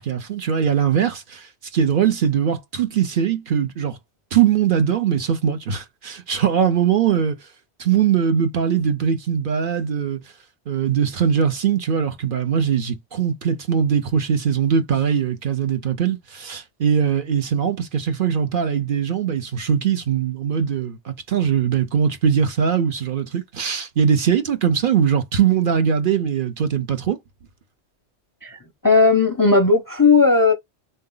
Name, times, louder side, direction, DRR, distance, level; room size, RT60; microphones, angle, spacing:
voice 1, 0.0-4.0 4.3-7.4 7.8-10.2 10.7-27.2, right 7 dB, 55° right, 0.7 m, -21 dB
voice 2, 28.4-30.5, left 4 dB, 30° left, 0.4 m, -16 dB
3.7 x 2.7 x 3.7 m
omnidirectional pair, 1.1 m